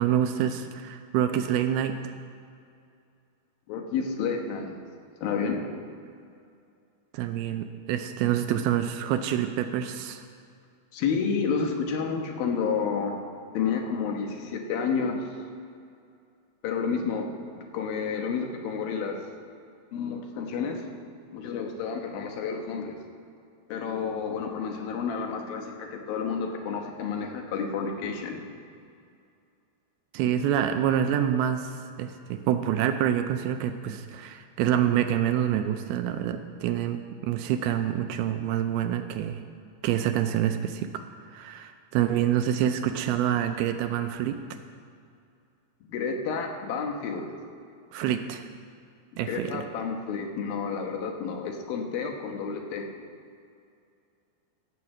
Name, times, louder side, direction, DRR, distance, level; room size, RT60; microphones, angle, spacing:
voice 1, 0.0-2.0 7.1-10.2 30.1-39.4 39.8-41.0 41.3-44.4 47.9-48.5 49.2-49.6, right 10 dB, 80° right, 8 dB, 2.4 m, -27 dB
voice 2, 3.7-4.8 5.2-5.6 10.9-13.2 13.5-15.2 16.6-17.3 17.6-19.2 19.9-20.8 21.3-23.0 23.7-28.5 45.9-47.3 49.3-52.9, left 5 dB, 70° left, 3 dB, 2.8 m, -30 dB
15.5 x 6.8 x 7.2 m, 2.4 s
omnidirectional pair, 4.7 m